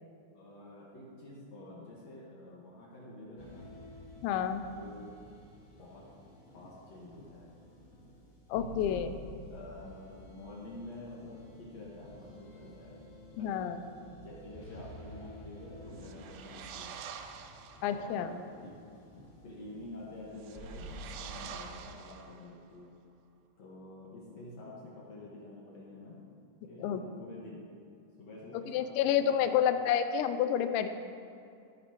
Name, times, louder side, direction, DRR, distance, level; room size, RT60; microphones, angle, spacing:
voice 1, 0.3-3.7 4.5-5.2 5.8-6.1 6.5-7.5 7.9-8.0 8.5-9.2 9.5-12.9 13.3-13.6 14.1-17.1 17.9-18.7 19.4-23.0 23.6-26.3 26.6-27.7 28.2-29.8, left 2 dB, 60° left, -6 dB, 1.8 m, -48 dB
sound 1, 3.4-21.9, equal, 20° left, 1.5 m, -51 dB
voice 2, 4.2-4.6 8.5-9.1 13.4-13.8 17.8-18.3 26.8-27.0 28.7-30.9, left 9 dB, 85° left, 9 dB, 2.8 m, -29 dB
sound 2, 15.9-18.0 20.3-22.7, right 7 dB, 80° right, 2.6 m, -47 dB
17.0 x 9.6 x 3.0 m, 2.5 s
omnidirectional pair, 5.2 m